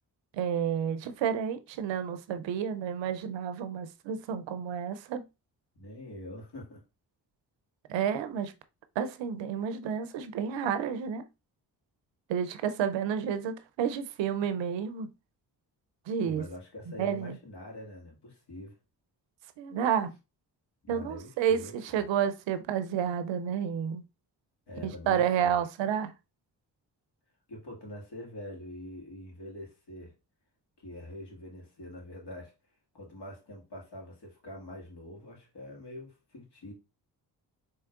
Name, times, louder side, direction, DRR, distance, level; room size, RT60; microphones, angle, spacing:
voice 1, 0.3-5.3 7.9-8.5 9.0-11.2 12.3-15.1 16.1-16.4 17.0-17.3 19.6-20.1 20.9-24.0 24.8-26.1, right 8 dB, 90° right, 0.5 m, -30 dB
voice 2, 5.8-6.8 16.2-18.8 20.8-21.7 24.7-25.6 27.5-30.1 30.8-32.5 32.9-36.7, left 1 dB, 65° left, 1.9 m, -44 dB
4.5 x 3.1 x 2.3 m
supercardioid pair, 45°, 43 cm